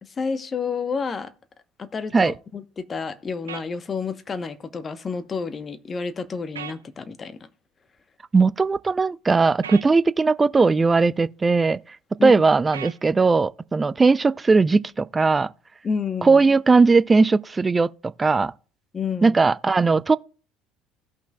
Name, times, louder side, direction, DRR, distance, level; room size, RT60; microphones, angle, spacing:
voice 1, 0.0-1.3 1.8-7.4 12.2-12.4 15.8-16.4 18.9-19.4, left 5 dB, 30° left, 0.9 m, -30 dB
sound 1, 3.5-3.7 6.5-6.8 9.6-9.9 12.7-13.0, right 8 dB, 85° right, 0.5 m, -35 dB
voice 2, 8.3-11.8 12.2-15.5 16.2-17.9 18.2-18.5 19.2-20.2, right 4 dB, 25° right, 0.4 m, -18 dB
16.5 x 5.7 x 2.3 m
hypercardioid pair, 65°, 0 cm